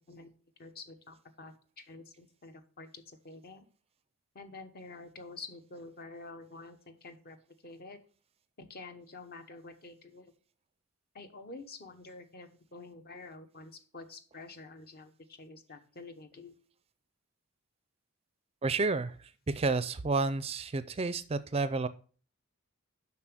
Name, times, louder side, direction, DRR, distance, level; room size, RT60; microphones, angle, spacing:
voice 1, 0.6-3.6 4.3-7.4 7.6-8.0 8.6-10.3 11.1-16.5, left 3 dB, 45° left, 8 dB, 1.1 m, -48 dB
voice 2, 18.6-19.2 19.5-21.9, right 3 dB, 25° right, 14 dB, 0.4 m, -30 dB
7.6 x 5.9 x 6.1 m, 0.41 s
head